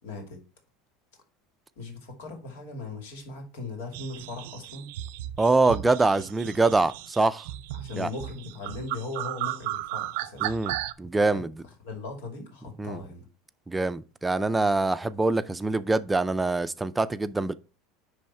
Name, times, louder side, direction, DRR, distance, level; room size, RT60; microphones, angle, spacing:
voice 1, 0.0-0.4 1.8-4.9 7.8-10.5 11.3-11.5 11.8-13.3, left 3 dB, 90° left, 2.6 m, -38 dB
sound 1, 3.9-10.9, right 15 dB, 70° right, 0.4 m, -35 dB
voice 2, 5.4-7.4 8.0-8.1 10.4-11.5 12.8-13.0 13.7-17.5, right 3 dB, 10° right, 0.3 m, -24 dB
10.5 x 3.4 x 4.3 m
supercardioid pair, 165°, 0 cm